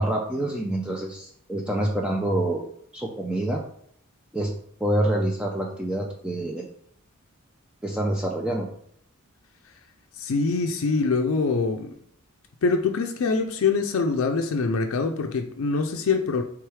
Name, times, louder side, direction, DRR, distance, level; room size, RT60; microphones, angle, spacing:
voice 1, 0.0-2.7 2.9-3.6 4.3-4.5 4.8-6.7 7.8-8.7, right 1 dB, 5° right, 0 dB, 0.4 m, -26 dB
voice 2, 10.1-11.9 12.6-16.4, left 4 dB, 75° left, 4 dB, 0.4 m, -24 dB
3.4 x 3.3 x 4.7 m, 0.66 s
head